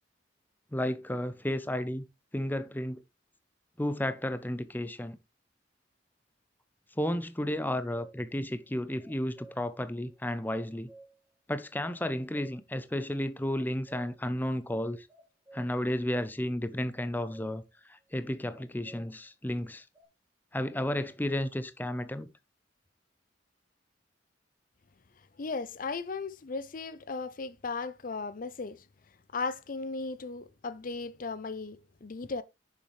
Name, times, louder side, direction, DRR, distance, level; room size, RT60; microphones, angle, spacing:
voice 1, 0.7-2.0 2.3-3.0 3.8-5.2 7.0-10.9 11.5-15.1 15.5-17.6 17.9-19.8 20.5-22.3, left 1 dB, 10° left, 0.7 m, -32 dB
sound 1, 7.9-8.2 8.8-9.8 10.1-10.2 10.5-11.3 11.7-11.8 12.0-12.8 13.1-13.2 13.5-14.3 14.6-14.7 15.1-15.9 16.2-16.3 16.9-17.7 18.5-19.1 19.9-20.0, right 2 dB, 15° right, 3.4 m, -54 dB
voice 2, 25.4-28.8 29.3-32.4, left 4 dB, 50° left, 0.6 m, -36 dB
9.8 x 7.2 x 3.2 m
head